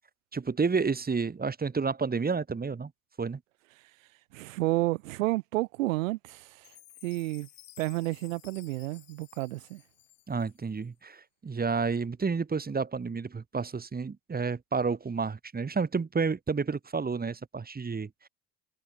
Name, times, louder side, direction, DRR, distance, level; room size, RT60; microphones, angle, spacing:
voice 1, 0.3-2.9 3.2-3.4 10.3-18.1, right 5 dB, 25° right, 1.7 m, -30 dB
voice 2, 4.3-6.7 7.0-7.5 7.8-9.8, right 19 dB, 90° right, 1.3 m, -31 dB
Chime, 6.6-10.9, left 14 dB, 60° left, 3.2 m, -55 dB
hypercardioid pair, 65°, 38 cm